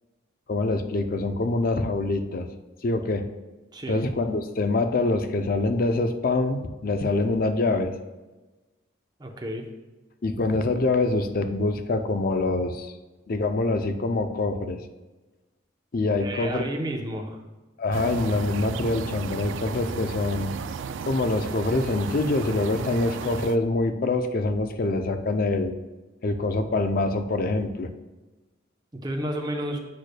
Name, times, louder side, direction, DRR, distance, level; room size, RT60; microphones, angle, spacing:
voice 1, 0.5-2.5 2.8-3.2 3.9-7.9 10.2-12.9 13.3-14.8 15.9-16.6 17.8-20.5 21.0-25.7 26.2-27.9, left 2 dB, 50° left, 7 dB, 0.5 m, -25 dB
voice 2, 3.7-4.0 9.2-9.7 16.2-17.4 28.9-29.8, right 1 dB, 20° right, 2 dB, 0.7 m, -31 dB
sound 1, 17.9-23.6, right 6 dB, 75° right, 0.3 m, -34 dB
8.2 x 6.3 x 2.2 m, 1.2 s
head